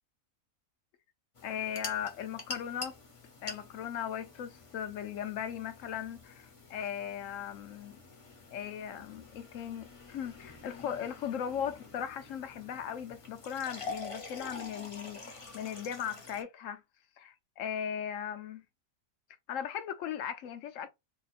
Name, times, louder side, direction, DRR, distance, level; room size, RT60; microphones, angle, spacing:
sound 1, 1.3-16.4, left 3 dB, 30° left, 0.6 m, -47 dB
voice 1, 1.4-3.0 3.4-8.0 8.5-16.8 17.2-18.6 19.5-20.9, left 9 dB, 70° left, 0.9 m, -38 dB
2.9 x 2.4 x 4.1 m
omnidirectional pair, 1.4 m